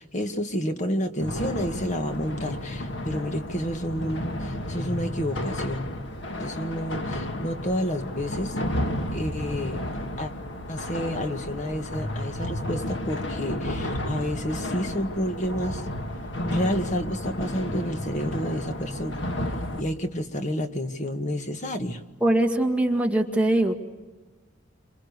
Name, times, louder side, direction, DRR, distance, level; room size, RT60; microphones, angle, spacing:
voice 1, 0.0-5.9 6.4-8.6 9.1-9.8 10.2-10.3 10.7-15.9 16.5-19.3 19.8-22.0, equal, 40° left, 6 dB, 1.8 m, -30 dB
sound 1, 1.2-19.8, left 1 dB, 65° left, 1.7 m, -32 dB
voice 2, 22.2-23.7, right 1 dB, 5° right, 2 dB, 1.8 m, -22 dB
29.5 x 27.0 x 6.8 m, 1.2 s
head